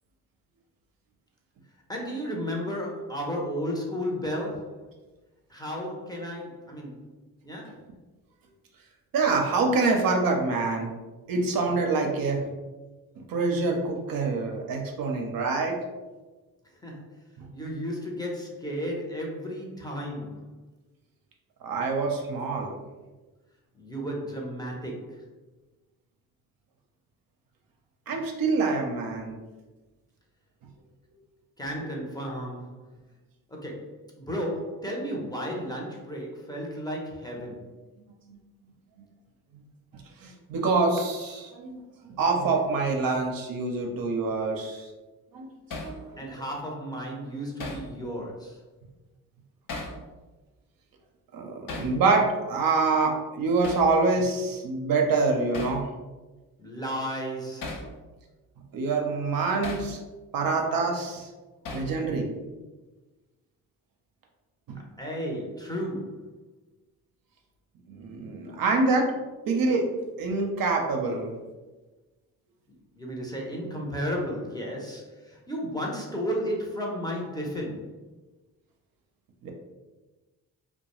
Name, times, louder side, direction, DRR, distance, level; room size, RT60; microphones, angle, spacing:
voice 1, 1.9-4.8 5.5-7.0 7.4-7.8 16.8-17.1 17.5-20.5 23.7-25.2 31.6-32.8 33.5-37.7 46.2-48.6 56.6-57.7 65.0-66.2 73.0-78.0, equal, 10° left, -2 dB, 0.7 m, -33 dB
voice 2, 9.1-10.9 11.3-12.5 13.2-15.8 17.4-17.5 21.6-22.7 28.1-29.4 38.0-38.1 40.2-44.9 45.3-45.5 45.8-46.3 51.3-55.9 58.7-60.0 60.3-61.3 61.7-62.3 64.7-64.8 67.9-69.1 69.5-69.9 70.2-71.3 79.4-79.5, right 3 dB, 60° right, 2 dB, 0.6 m, -26 dB
Hammer, 45.7-46.0 47.6-47.9 49.7-50.0 51.7-51.9 53.6-53.9 55.5-55.8 57.6-57.9 59.6-59.9 61.6-62.0, left 2 dB, 55° left, 0.7 m, -36 dB
2.3 x 2.2 x 2.9 m, 1.2 s
supercardioid pair, 55°, 39 cm